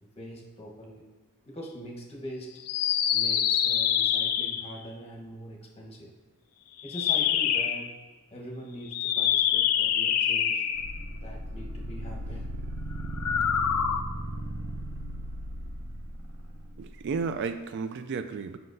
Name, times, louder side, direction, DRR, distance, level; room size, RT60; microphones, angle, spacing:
voice 1, 0.2-1.0 1.4-2.6 3.1-6.1 6.8-8.0 8.3-10.6 11.2-12.5 16.0-16.3, equal, 30° left, 0 dB, 1.0 m, -42 dB
sound 1, 2.6-4.8 6.8-7.9 8.9-11.0 13.1-14.0, left 9 dB, 80° left, 0.5 m, -25 dB
sound 2, 10.7-16.9, right 1 dB, 75° right, 0.8 m, -36 dB
voice 2, 16.8-18.6, right 5 dB, 55° right, 10 dB, 0.3 m, -33 dB
7.7 x 5.6 x 2.6 m, 1.2 s
head